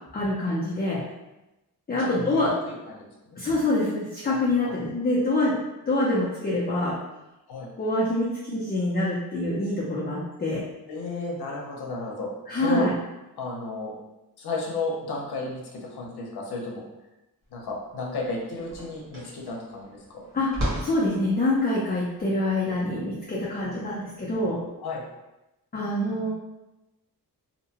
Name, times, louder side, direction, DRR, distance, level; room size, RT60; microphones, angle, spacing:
voice 1, 0.1-1.0 1.9-2.5 3.4-5.5 5.9-6.9 7.8-10.6 12.5-12.9 20.3-20.5 20.8-24.6 25.7-26.3, left 1 dB, 25° left, -7 dB, 0.5 m, -25 dB
voice 2, 2.0-3.4 4.3-4.4 4.6-4.8 7.5-7.7 10.9-12.8 13.4-13.9 14.4-16.8 17.5-20.3 24.8-25.0, left 3 dB, 80° left, -1 dB, 0.7 m, -33 dB
sound 1, 17.6-17.7 18.0-24.5, equal, 45° right, 1.0 m, -36 dB
2.7 x 2.2 x 2.8 m, 0.98 s
wide cardioid pair, 115°, 38 cm